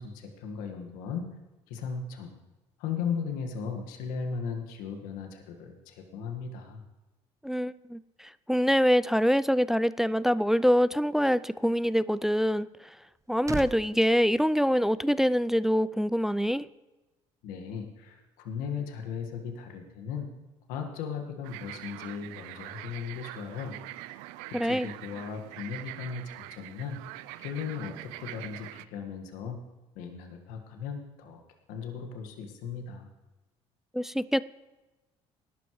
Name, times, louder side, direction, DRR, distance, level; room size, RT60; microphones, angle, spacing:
voice 1, 0.0-1.3 1.7-2.3 2.8-6.8 17.4-20.3 20.7-23.8 24.5-27.0 27.4-29.6 30.0-31.4 31.7-33.1, left 6 dB, 80° left, 4 dB, 1.7 m, -37 dB
voice 2, 7.4-8.0 8.5-12.7 13.3-16.7 24.5-24.9 33.9-34.4, equal, 5° right, 17 dB, 0.3 m, -25 dB
sound 1, 12.7-15.4 15.7-15.9, right 4 dB, 20° right, 0.8 m, -41 dB
sound 2, 21.4-28.9, right 17 dB, 85° right, 0.4 m, -44 dB
19.0 x 12.0 x 3.2 m, 1.1 s
supercardioid pair, 75°, 14 cm